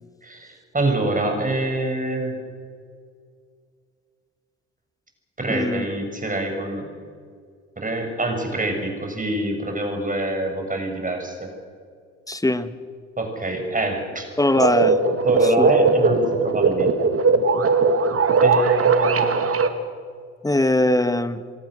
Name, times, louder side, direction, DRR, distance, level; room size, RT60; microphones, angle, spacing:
voice 1, 0.2-2.4 5.4-6.9 7.8-11.5 13.2-14.3 15.2-16.9 18.4-19.4, right 1 dB, 20° right, 4 dB, 6.7 m, -25 dB
voice 2, 5.5-5.8 12.3-12.7 14.4-15.0 15.4-15.7 20.4-21.4, left 1 dB, 10° left, 12 dB, 1.5 m, -21 dB
sound 1, 14.5-19.7, right 4 dB, 40° right, 2.2 m, -19 dB
27.5 x 18.0 x 6.4 m, 2.1 s
hypercardioid pair, 50°, 36 cm